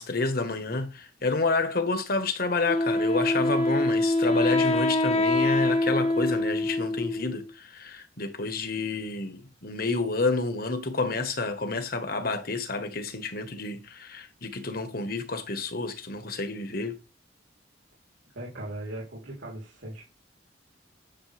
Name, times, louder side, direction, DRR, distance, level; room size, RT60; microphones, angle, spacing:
voice 1, 0.0-17.0, left 3 dB, 50° left, 1.5 m, -29 dB
Wind instrument woodwind instrument, 2.7-7.5, left 2 dB, 35° left, 1.0 m, -25 dB
voice 2, 18.3-20.0, right 1 dB, 80° right, 3.7 m, -38 dB
10.5 x 6.7 x 3.5 m
head